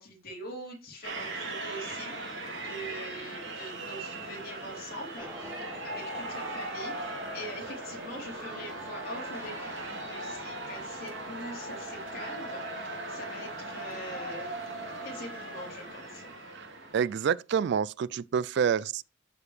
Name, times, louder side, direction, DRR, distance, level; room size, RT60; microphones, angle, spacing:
voice 1, 0.0-14.5 15.0-16.3, equal, 50° left, 3.5 m, -43 dB
sound 1, 1.0-17.3, right 2 dB, 85° right, 2.3 m, -39 dB
sound 2, 5.1-12.3, equal, 15° right, 1.6 m, -48 dB
voice 2, 16.9-19.0, right 7 dB, 60° right, 0.3 m, -28 dB
13.0 x 5.0 x 3.2 m
head